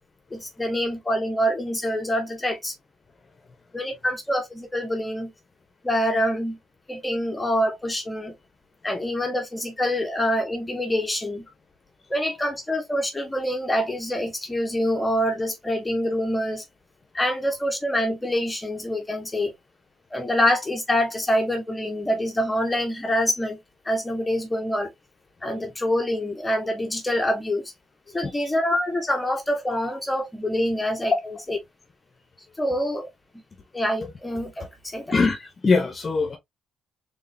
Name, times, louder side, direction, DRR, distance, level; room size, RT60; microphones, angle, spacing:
voice 1, 0.3-2.7 3.7-5.3 5.8-6.6 6.9-8.3 8.8-11.4 12.1-16.6 17.1-19.5 20.1-23.6 23.8-24.9 25.4-27.6 28.1-31.1 31.5-31.6 32.6-33.1 33.7-35.1, equal, 15° left, 1.3 m, -25 dB
voice 2, 35.1-36.4, left 4 dB, 35° left, 1.1 m, -22 dB
3.9 x 3.7 x 2.7 m
cardioid pair, 90°, 0 cm